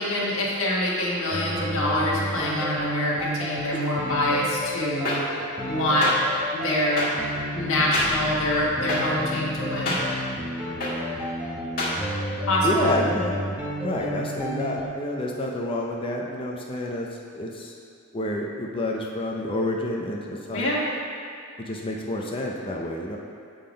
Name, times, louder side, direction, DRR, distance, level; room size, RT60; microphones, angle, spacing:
voice 1, 0.0-5.2 5.7-6.1 6.5-7.1 7.5-10.0 12.5-13.0 20.5-20.8, left 1 dB, 60° left, -6 dB, 1.4 m, -25 dB
sound 1, 1.3-14.9, equal, 10° right, 0.9 m, -32 dB
sound 2, 5.0-5.2 6.0-6.1 7.0-7.1 7.9-8.1 8.9-9.0 9.8-10.0 10.8-10.9 11.8-11.9, left 2 dB, 45° left, 1.5 m, -26 dB
voice 2, 12.6-13.3 13.8-17.1 17.3-17.7 18.1-20.7 21.6-23.2, left 1 dB, 25° left, -1 dB, 0.5 m, -28 dB
8.5 x 3.8 x 5.1 m, 2.3 s
head